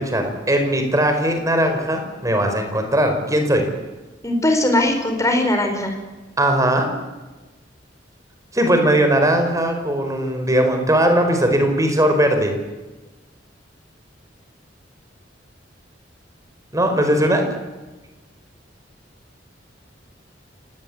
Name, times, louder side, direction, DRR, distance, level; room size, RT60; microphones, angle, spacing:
voice 1, 0.0-3.6 6.4-6.9 8.5-12.5 16.7-17.4, right 1 dB, 20° right, 5 dB, 4.7 m, -19 dB
voice 2, 4.2-6.0, left 1 dB, 15° left, 5 dB, 4.9 m, -19 dB
29.0 x 18.5 x 8.6 m, 1.2 s
head